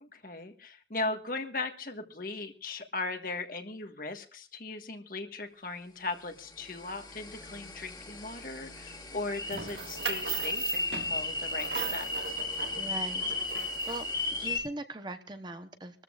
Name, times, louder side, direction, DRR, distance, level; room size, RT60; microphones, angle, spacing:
voice 1, 0.0-12.4, left 3 dB, 50° left, 6 dB, 1.5 m, -38 dB
sound 1, 6.5-14.6, left 2 dB, 25° left, 2.1 m, -35 dB
sound 2, 9.5-14.2, right 7 dB, 80° right, 2.0 m, -39 dB
voice 2, 12.8-13.4 13.9-16.0, right 2 dB, 25° right, 8 dB, 0.9 m, -40 dB
26.0 x 13.5 x 2.5 m, 0.38 s
head